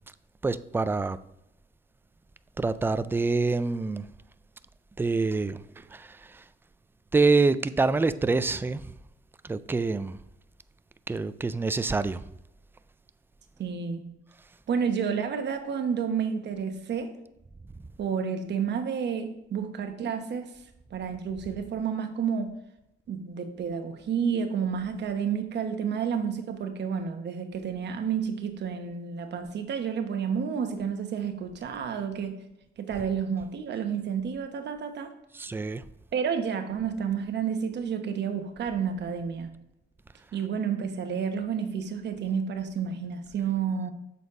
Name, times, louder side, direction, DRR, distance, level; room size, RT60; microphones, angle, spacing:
voice 1, 0.4-1.2 2.6-4.1 5.0-6.4 7.1-8.9 9.4-10.2 11.1-12.2 35.3-35.9, right 3 dB, 10° right, 0.3 m, -26 dB
voice 2, 13.6-14.0 14.7-17.1 18.0-20.5 20.9-22.5 23.1-32.3 32.8-35.1 36.1-39.5 40.3-43.9, right 7 dB, 60° right, 1.0 m, -30 dB
7.0 x 4.1 x 4.8 m
cardioid pair, 90°, 20 cm